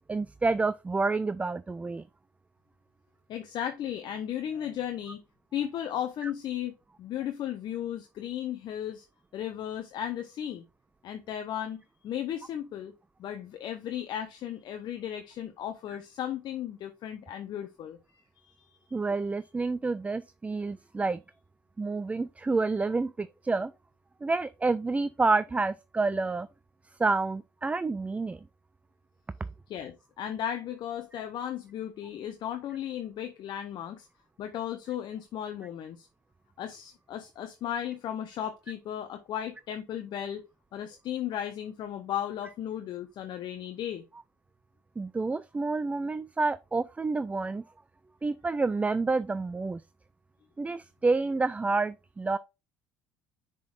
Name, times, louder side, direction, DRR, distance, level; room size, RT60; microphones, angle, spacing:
voice 1, 0.1-2.0 6.2-6.3 18.9-21.2 21.8-23.7 24.2-26.5 27.0-28.4 45.0-47.6 48.2-49.8 50.6-52.4, right 3 dB, 15° right, 0.3 m, -29 dB
voice 2, 3.3-5.2 5.5-6.7 7.0-9.0 9.3-10.6 11.0-12.9 13.2-18.0 18.5-18.9 29.7-34.1 34.4-36.1 36.6-40.4 40.7-44.0, left 10 dB, 50° left, 0.7 m, -35 dB
10.5 x 3.8 x 2.4 m
hypercardioid pair, 65°, 9 cm